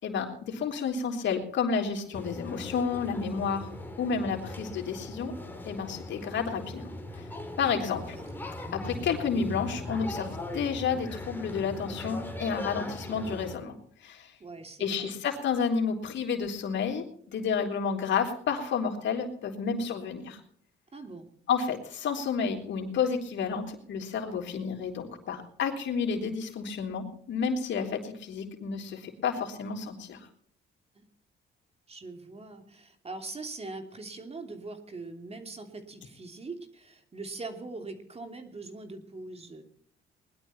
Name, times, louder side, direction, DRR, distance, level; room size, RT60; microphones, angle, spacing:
voice 1, 0.0-3.7 4.0-5.3 5.6-6.9 7.2-7.3 7.6-8.2 8.7-13.7 14.0-14.3 14.8-20.4 21.5-30.3, left 6 dB, 70° left, 2 dB, 3.4 m, -30 dB
sound 1, 2.1-13.6, left 1 dB, 10° left, 3.4 m, -39 dB
voice 2, 7.6-8.3 14.4-15.1 20.9-21.3 30.9-31.0 31.9-39.7, right 3 dB, 30° right, 5 dB, 2.9 m, -42 dB
20.5 x 11.5 x 4.3 m, 0.63 s
cardioid pair, 90°, 20 cm